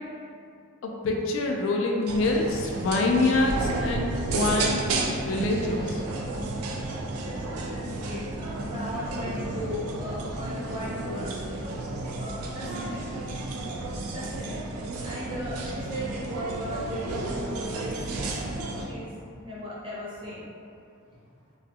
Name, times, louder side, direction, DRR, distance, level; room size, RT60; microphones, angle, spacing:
voice 1, 0.8-6.0, left 2 dB, 65° left, 0 dB, 0.3 m, -26 dB
sound 1, 2.1-18.9, right 2 dB, 85° right, 0.3 m, -32 dB
voice 2, 7.2-11.3 11.6-11.8 12.2-13.1 14.1-14.6 15.0-18.2 18.8-19.1 19.4-20.4, equal, 25° right, -8 dB, 0.5 m, -37 dB
2.4 x 2.3 x 2.7 m, 2.4 s
head